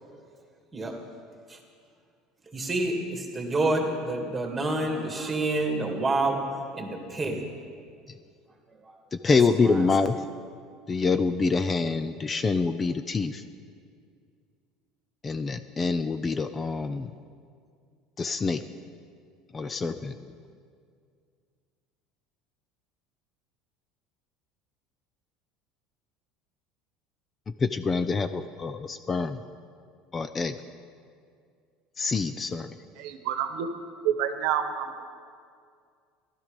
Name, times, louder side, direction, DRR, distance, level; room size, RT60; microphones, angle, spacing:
voice 1, 2.5-6.4 6.7-7.4 8.9-9.0 9.5-10.1, right 2 dB, 15° right, 2 dB, 2.3 m, -28 dB
voice 2, 9.2-10.2 10.9-13.4 15.2-17.1 18.2-18.6 19.5-20.2 27.6-29.4 30.1-30.5 32.0-32.7, left 4 dB, 25° left, 10 dB, 0.5 m, -26 dB
voice 3, 33.0-33.7 34.0-35.0, right 9 dB, 75° right, 7 dB, 1.1 m, -28 dB
14.5 x 12.5 x 5.2 m, 2.2 s
supercardioid pair, 125°, 0 cm